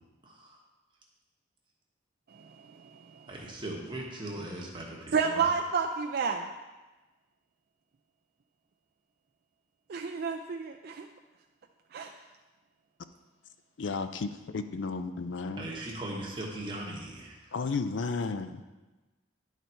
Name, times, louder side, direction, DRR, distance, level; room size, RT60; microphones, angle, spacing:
voice 1, 0.2-0.6 3.3-5.5 15.6-17.5, right 1 dB, 25° right, -2 dB, 1.2 m, -39 dB
voice 2, 2.3-3.3 5.1-6.5 9.9-11.1 11.9-12.1, right 5 dB, 50° right, 3 dB, 0.4 m, -31 dB
voice 3, 13.8-15.7 17.5-18.6, left 4 dB, 65° left, 10 dB, 0.5 m, -33 dB
10.0 x 4.1 x 4.5 m, 1.2 s
head